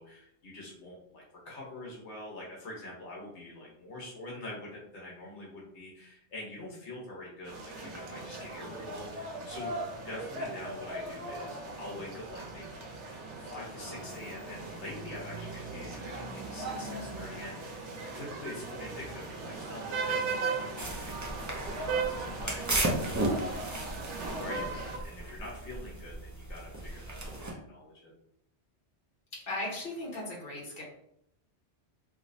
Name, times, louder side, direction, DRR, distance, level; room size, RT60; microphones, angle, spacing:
voice 1, 0.0-12.9 13.3-17.8 18.1-23.9 24.3-28.1, left 1 dB, 80° left, -4 dB, 1.3 m, -45 dB
sound 1, 7.4-25.0, right 3 dB, 85° right, 1.0 m, -38 dB
sound 2, 20.8-27.5, right 1 dB, 25° right, 0.4 m, -35 dB
voice 2, 29.3-30.8, left 2 dB, 55° left, -4 dB, 1.3 m, -37 dB
3.1 x 3.0 x 2.6 m, 0.73 s
omnidirectional pair, 1.1 m